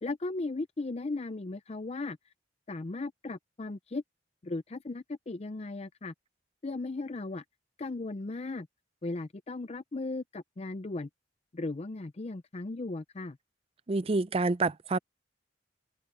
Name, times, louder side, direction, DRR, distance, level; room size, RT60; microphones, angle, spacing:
voice 1, 0.0-2.2 2.7-4.0 4.4-6.1 6.6-7.4 7.8-8.7 9.0-11.1 11.5-13.4, left 2 dB, 35° left, 0.5 m, -36 dB
voice 2, 13.9-15.0, right 3 dB, 30° right, 0.5 m, -27 dB
head